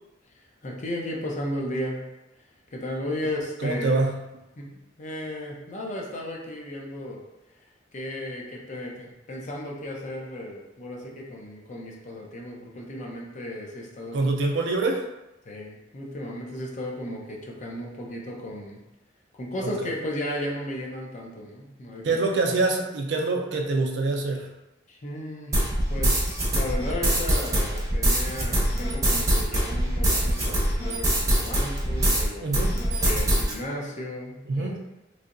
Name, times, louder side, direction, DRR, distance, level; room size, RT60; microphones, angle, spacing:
voice 1, 0.4-2.0 2.7-4.0 4.6-7.2 7.9-14.2 15.5-18.8 19.3-22.2 24.9-34.8, left 1 dB, 40° left, -1 dB, 0.6 m, -35 dB
voice 2, 3.6-4.2 14.1-15.0 19.6-19.7 22.0-24.5 32.4-32.7 34.5-34.7, right 3 dB, 65° right, 2 dB, 0.4 m, -25 dB
sound 1, 25.5-32.3 32.5-33.5, right 1 dB, 20° right, 0.7 m, -23 dB
3.2 x 2.8 x 2.5 m, 0.96 s
head